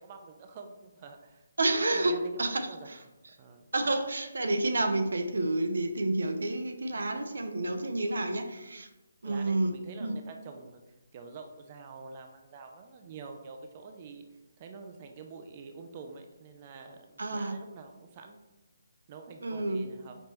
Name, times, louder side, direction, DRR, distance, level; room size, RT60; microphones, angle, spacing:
voice 1, 0.0-1.4 1.8-3.0 3.4-3.7 9.2-18.4 19.1-20.1, right 4 dB, 25° right, 5 dB, 0.3 m, -47 dB
voice 2, 1.6-3.0 3.7-8.9 9.2-9.7 10.0-10.1 17.2-17.6 19.4-19.9, right 2 dB, 85° right, 6 dB, 0.6 m, -29 dB
5.1 x 3.2 x 2.9 m, 1.0 s
hypercardioid pair, 170°, 0 cm